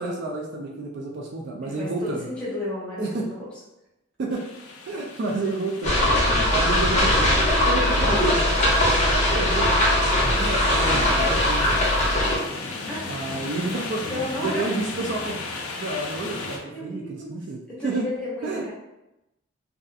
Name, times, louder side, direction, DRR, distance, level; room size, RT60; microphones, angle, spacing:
voice 1, 0.0-2.2 3.0-3.3 4.2-4.4 4.9-7.4 7.7-11.8 13.1-15.4 15.8-18.1 18.4-18.6, right 2 dB, 55° right, -1 dB, 0.3 m, -30 dB
voice 2, 1.6-3.5 12.9-13.1 14.1-14.7 16.6-17.3 17.7-18.7, left 1 dB, 5° left, -8 dB, 0.8 m, -32 dB
sound 1, 4.3-16.6, left 3 dB, 85° left, 0.4 m, -36 dB
sound 2, 5.8-12.4, left 1 dB, 35° left, 0.6 m, -20 dB
2.7 x 2.3 x 2.3 m, 0.93 s
head